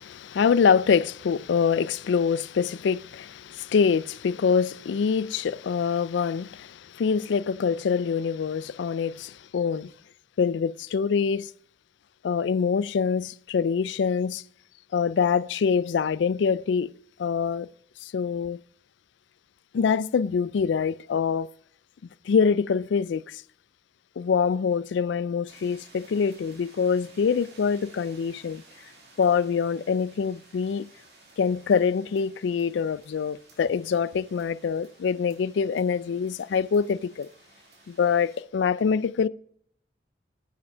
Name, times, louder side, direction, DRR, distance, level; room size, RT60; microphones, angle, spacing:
voice 1, 0.0-9.9 10.4-11.5 12.2-14.4 14.9-16.9 17.2-17.7 18.0-18.6 19.7-21.5 22.3-23.4 24.2-28.6 29.2-30.9 31.4-37.3 37.9-39.3, left 6 dB, 75° left, 0.3 m, -25 dB
sound 1, 25.5-38.4, right 3 dB, 60° right, 2.1 m, -55 dB
9.3 x 6.0 x 5.4 m
head